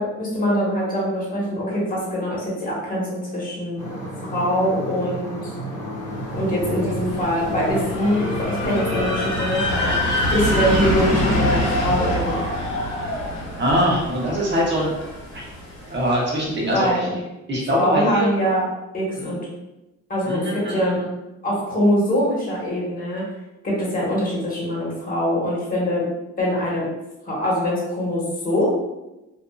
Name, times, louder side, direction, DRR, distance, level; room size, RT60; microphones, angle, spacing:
voice 1, 0.0-3.8 4.3-5.5 6.3-9.9 10.3-12.4 16.7-17.1 17.8-18.6 18.9-19.4 20.1-21.0 21.4-23.3 23.6-26.1 26.4-26.8 27.2-28.7, equal, 30° left, -6 dB, 1.3 m, -23 dB
sound 1, 3.8-9.6, right 2 dB, 10° left, 1.3 m, -32 dB
sound 2, 5.6-13.7, left 5 dB, 45° left, 0.4 m, -36 dB
sound 3, 6.3-16.2, left 1 dB, 70° left, 1.2 m, -25 dB
voice 2, 13.6-14.9 15.3-15.5 15.9-17.1 17.5-18.3 19.2-19.3 20.3-21.0, equal, 35° right, -4 dB, 1.0 m, -23 dB
2.6 x 2.5 x 2.3 m, 0.97 s
cardioid pair, 90°, 30 cm